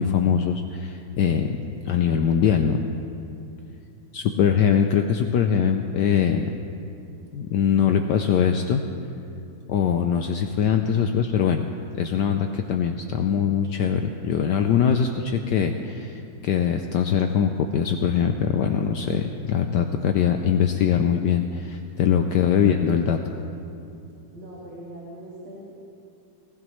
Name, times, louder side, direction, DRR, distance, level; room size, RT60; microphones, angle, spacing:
voice 1, 0.0-2.8 4.1-6.5 7.3-8.8 9.7-11.7 11.9-23.2, left 8 dB, 75° left, 5 dB, 1.0 m, -22 dB
voice 2, 4.1-4.6 22.3-22.8 24.3-25.7, right 1 dB, 75° right, -7 dB, 2.8 m, -42 dB
18.5 x 15.0 x 3.1 m, 2.6 s
omnidirectional pair, 2.3 m